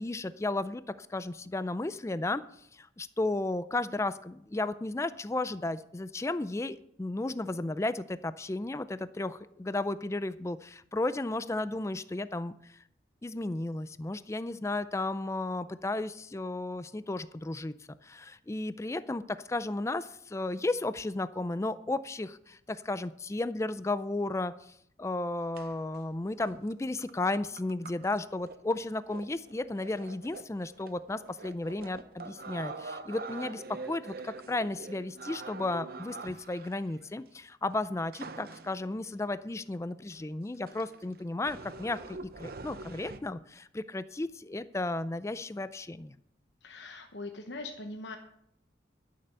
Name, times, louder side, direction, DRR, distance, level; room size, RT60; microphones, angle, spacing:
voice 1, 0.0-12.8 13.2-17.7 18.0-46.2, left 2 dB, 15° left, 14 dB, 0.4 m, -34 dB
sound 1, 25.6-26.0 26.5-26.7 27.0-37.2 38.1-38.9 39.7-39.8 40.1-40.2 40.7-43.2, right 3 dB, 55° right, 0.7 m, -45 dB
voice 2, 46.6-48.2, left 2 dB, 75° left, 5 dB, 1.0 m, -41 dB
12.0 x 6.7 x 6.9 m, 0.73 s
head